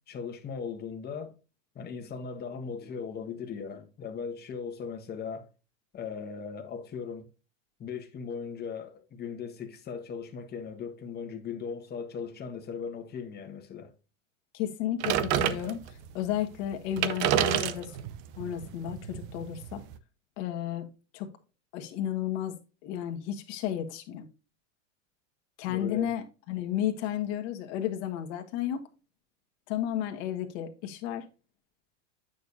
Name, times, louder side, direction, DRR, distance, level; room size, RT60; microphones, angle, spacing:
voice 1, 0.1-1.4 1.7-5.5 5.9-7.3 7.8-13.9 25.7-26.2, left 6 dB, 25° left, 1.4 m, -38 dB
voice 2, 14.5-18.0 18.4-19.8 20.4-20.9 21.1-21.3 21.7-22.6 22.8-24.3 25.6-28.8 29.7-31.3, left 11 dB, 60° left, 1.7 m, -33 dB
sound 1, 15.0-16.1 16.6-16.7 16.9-20.0, right 11 dB, 60° right, 0.9 m, -29 dB
9.2 x 6.8 x 2.6 m
supercardioid pair, 130°, 38 cm